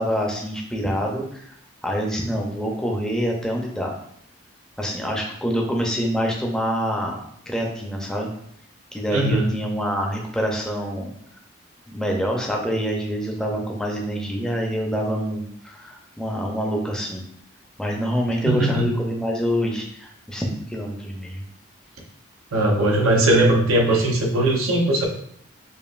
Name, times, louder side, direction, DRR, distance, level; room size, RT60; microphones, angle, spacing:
voice 1, 0.0-1.5 1.8-4.0 4.8-7.2 7.5-8.3 8.9-11.1 11.9-17.2 17.8-21.4, equal, 5° left, 0 dB, 0.5 m, -26 dB
voice 2, 9.1-9.5 18.5-18.9 22.5-25.1, right 1 dB, 90° right, 0 dB, 0.8 m, -19 dB
5.2 x 2.5 x 2.4 m, 0.68 s
head